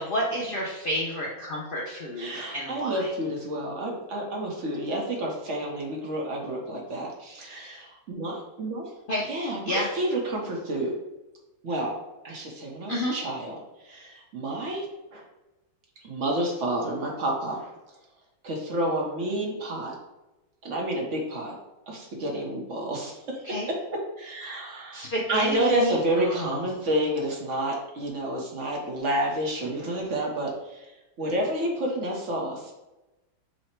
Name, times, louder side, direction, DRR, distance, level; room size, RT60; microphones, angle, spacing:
voice 1, 0.0-3.1 9.1-9.3 9.6-9.9 12.9-13.2 23.4-23.7 24.9-26.6, equal, 85° left, -3 dB, 0.4 m, -30 dB
voice 2, 2.2-8.9 9.3-10.9 11.6-11.9 12.2-13.6 13.8-14.9 15.1-15.2 16.0-17.7 18.4-19.9 20.6-21.5 21.9-23.4 23.7-23.8 24.2-25.0 25.3-30.9 31.2-32.8, right 1 dB, 50° right, -1 dB, 1.0 m, -29 dB
5.6 x 2.1 x 4.3 m, 1.0 s
omnidirectional pair, 1.9 m